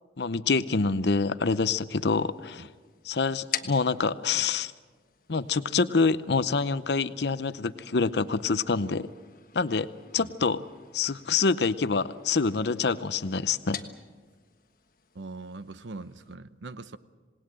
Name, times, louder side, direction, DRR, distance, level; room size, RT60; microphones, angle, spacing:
voice 1, 0.2-2.7 3.0-4.7 5.3-9.1 9.5-9.9 10.1-10.6 10.9-13.8, left 4 dB, 70° left, 14 dB, 0.7 m, -26 dB
sound 1, 2.0-16.3, left 9 dB, 50° left, 1.4 m, -46 dB
voice 2, 15.1-17.0, right 3 dB, 90° right, 14 dB, 0.9 m, -41 dB
27.0 x 19.0 x 7.6 m, 1.4 s
head